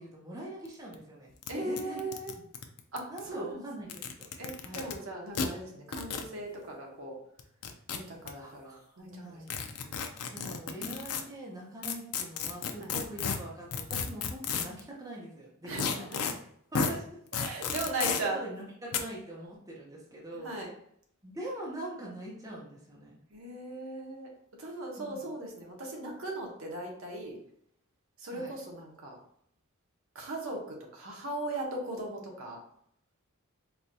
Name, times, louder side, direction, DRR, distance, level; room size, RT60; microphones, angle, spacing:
voice 1, 0.0-1.3 1.6-2.0 2.3-2.4 3.1-3.9 4.2-4.3 4.6-4.9 8.3-10.0 10.3-16.1 16.7-20.5 21.2-23.2 25.0-25.3 28.3-28.5, right 1 dB, 15° right, -4 dB, 0.6 m, -43 dB
sound 1, 0.7-0.8 0.9-1.0 1.4-1.5 1.8-3.2 3.8-4.9 5.3-5.5 5.9-6.3 7.4-8.3 9.5-11.2 11.8-14.8 15.8-16.3 16.7-16.9 17.3-18.2 18.9-19.0, left 6 dB, 85° left, 0.4 m, -33 dB
voice 2, 1.5-2.3 2.9-4.0 4.4-7.2 7.9-9.4 12.8-12.9 15.6-16.2 17.3-18.4 20.4-20.7 23.3-24.3 24.6-27.4 28.2-29.2 30.1-32.6, right 2 dB, 60° right, 0 dB, 0.9 m, -38 dB
4.4 x 2.2 x 2.6 m, 0.68 s
head